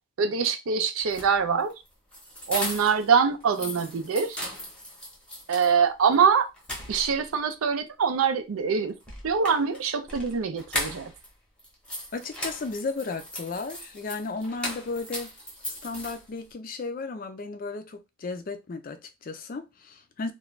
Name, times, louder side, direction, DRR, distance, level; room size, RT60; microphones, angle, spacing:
voice 1, 0.2-1.7 2.5-4.5 5.5-6.5 6.9-8.9 9.2-11.1, right 6 dB, 85° right, 0.5 m, -24 dB
sound 1, 1.0-3.1 3.4-5.7 6.1-6.2 6.6-7.4 9.0-11.3 11.6-16.5, equal, 5° left, 0.8 m, -37 dB
voice 2, 12.1-15.3 15.8-20.3, left 3 dB, 40° left, 0.4 m, -34 dB
2.5 x 2.2 x 3.0 m
head